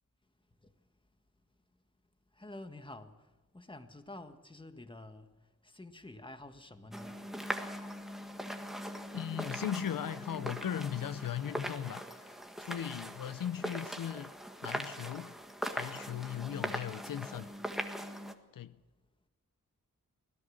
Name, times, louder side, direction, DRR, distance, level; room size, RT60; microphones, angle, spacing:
voice 1, 2.4-3.1 3.5-5.3 5.6-7.2, left 2 dB, 15° left, 1.6 m, -49 dB
sound 1, 6.9-18.3, equal, ahead, 1.7 m, -41 dB
voice 2, 9.1-14.3 14.6-15.3 15.7-17.5 18.5-18.8, left 9 dB, 80° left, 0.7 m, -38 dB
24.5 x 17.0 x 6.5 m
wide cardioid pair, 90°, 33 cm